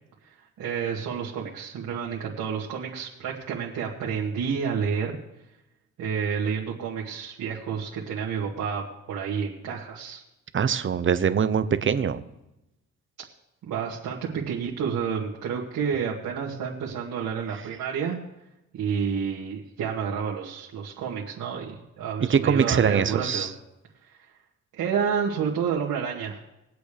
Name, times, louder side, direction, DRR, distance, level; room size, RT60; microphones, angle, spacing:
voice 1, 0.2-5.2 6.0-10.2 13.6-18.2 18.7-23.5 24.0-24.4 24.7-26.4, right 7 dB, 80° right, -3 dB, 2.2 m, -30 dB
voice 2, 10.5-12.2 22.3-23.5, right 7 dB, 40° right, 12 dB, 0.9 m, -23 dB
22.5 x 8.1 x 3.5 m, 0.92 s
cardioid pair, 90°, 30 cm